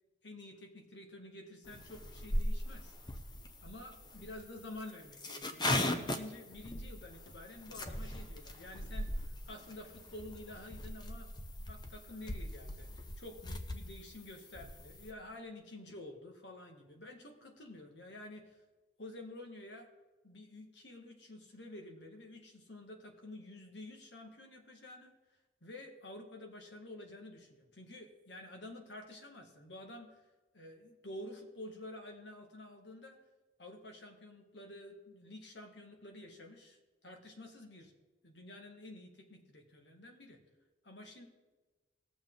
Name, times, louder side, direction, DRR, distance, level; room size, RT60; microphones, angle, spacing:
voice 1, 0.2-3.0 3.6-11.3 11.7-12.9 13.2-18.6 19.0-19.9 20.2-25.1 25.6-30.2 30.5-33.2 33.6-37.9 38.2-40.4 40.8-41.3, left 1 dB, 70° left, 3 dB, 1.9 m, -50 dB
sound 1, 1.7-15.1, left 1 dB, 25° left, 0.7 m, -39 dB
19.0 x 7.1 x 3.9 m, 1.2 s
head